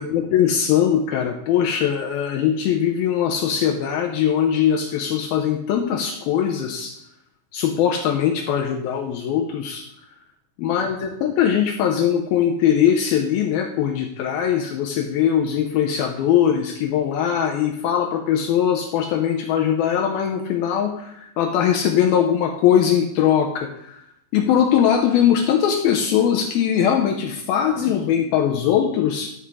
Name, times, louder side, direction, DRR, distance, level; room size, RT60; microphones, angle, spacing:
voice 1, 0.0-7.0 7.5-9.9 10.6-24.0 24.3-29.3, left 9 dB, 85° left, 3 dB, 2.1 m, -21 dB
11.0 x 7.6 x 3.7 m, 0.77 s
omnidirectional pair, 5.1 m